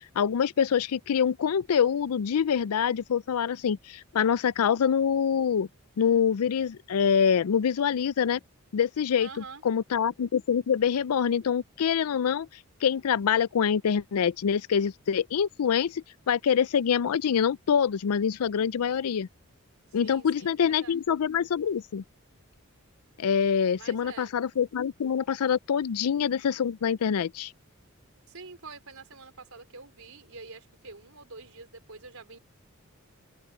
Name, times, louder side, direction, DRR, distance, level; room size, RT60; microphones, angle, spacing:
voice 1, 0.2-5.7 6.0-8.4 8.7-9.3 9.6-12.5 12.8-19.3 19.9-22.0 23.2-27.5, left 7 dB, 90° left, 0.4 m, -25 dB
voice 2, 9.2-9.6 19.9-21.0 23.8-24.3 28.3-32.4, right 4 dB, 80° right, 3.8 m, -46 dB
head